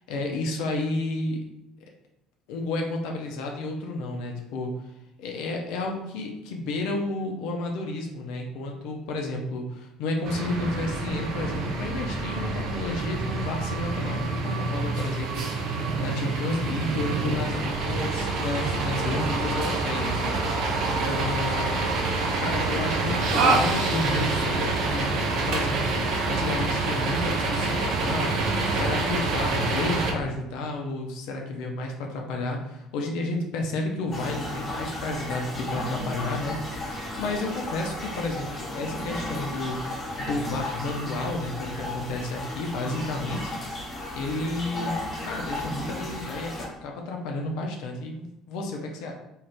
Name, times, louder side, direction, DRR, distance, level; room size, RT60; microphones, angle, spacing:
voice 1, 0.1-1.4 2.5-4.7 5.2-20.7 21.0-21.7 22.4-25.1 25.5-28.4 28.7-39.9 40.2-43.5 44.1-49.1, left 2 dB, 60° left, 1 dB, 0.4 m, -31 dB
sound 1, 10.2-30.1, right 3 dB, 55° right, 0.5 m, -27 dB
sound 2, 34.1-46.7, left 1 dB, 30° left, 0.9 m, -34 dB
2.5 x 2.3 x 3.2 m, 0.86 s
figure-of-eight pair, 60°, 0 cm